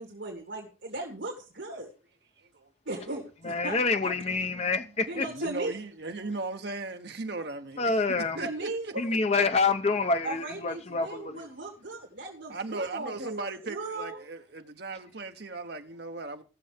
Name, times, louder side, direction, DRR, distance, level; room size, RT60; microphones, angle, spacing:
voice 1, 0.0-1.9 2.9-4.1 5.0-5.7 8.4-9.0 10.2-13.4 13.7-14.2, right 2 dB, 75° right, 2.4 m, -37 dB
voice 2, 2.4-2.7 4.3-7.8 8.1-8.9 12.5-16.4, right 3 dB, 55° right, 1.0 m, -38 dB
voice 3, 3.4-5.3 7.8-8.4 9.0-11.5, left 4 dB, 35° left, 0.7 m, -27 dB
18.5 x 6.8 x 3.4 m
head